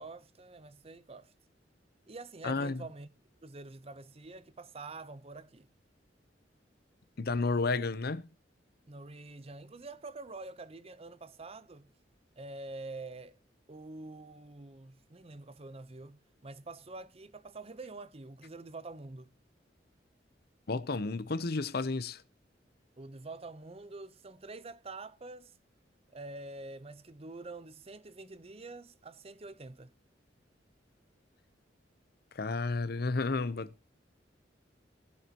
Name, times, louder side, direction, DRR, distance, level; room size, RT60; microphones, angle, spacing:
voice 1, 0.0-1.3 2.1-3.1 3.4-5.7 8.9-11.9 12.4-13.4 13.7-19.3 23.0-25.5 26.1-29.9, right 3 dB, 35° right, 0.8 m, -46 dB
voice 2, 2.4-2.8 7.2-8.3 20.7-22.2 32.3-33.7, left 3 dB, 60° left, 0.7 m, -31 dB
19.5 x 7.8 x 2.9 m
head